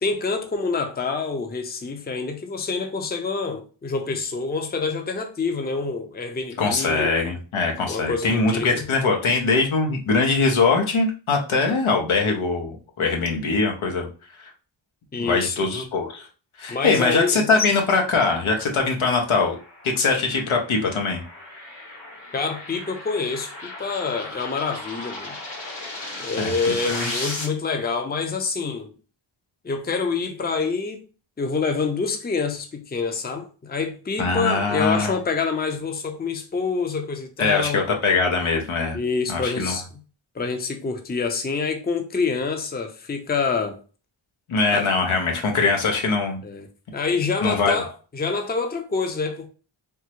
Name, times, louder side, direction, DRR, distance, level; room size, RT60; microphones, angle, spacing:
voice 1, 0.0-7.1 7.9-8.9 15.1-15.7 16.7-17.5 22.3-25.4 26.2-28.9 29.6-31.0 31.4-37.9 38.9-39.8 40.3-43.8 44.7-44.9 46.4-46.7 46.9-49.5, left 4 dB, 20° left, 0.5 m, -27 dB
voice 2, 6.6-14.1 15.2-16.3 16.6-19.6 19.8-21.2 26.4-26.5 26.8-27.1 34.2-35.1 37.4-39.0 39.3-39.8 44.5-46.4 47.4-47.8, left 4 dB, 80° left, 0.8 m, -22 dB
sound 1, 18.6-27.5, left 2 dB, 60° left, 1.5 m, -36 dB
3.5 x 2.1 x 2.9 m
wide cardioid pair, 60°, 48 cm